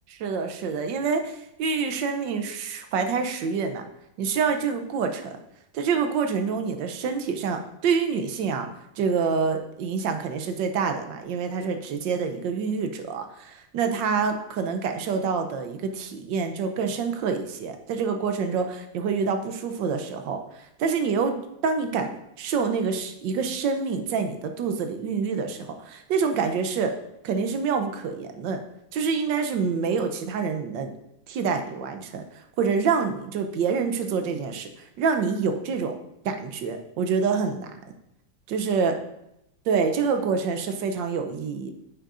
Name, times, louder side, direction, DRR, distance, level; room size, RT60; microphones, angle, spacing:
voice 1, 0.2-3.8 4.2-5.3 5.7-8.7 9.0-21.3 21.6-26.9 27.2-28.6 28.9-30.9 31.3-32.2 32.6-34.7 35.0-36.0 36.2-37.8 38.5-38.9 39.7-41.7, right 5 dB, 70° right, 6 dB, 1.3 m, -26 dB
9.4 x 6.3 x 2.5 m, 0.83 s
omnidirectional pair, 2.2 m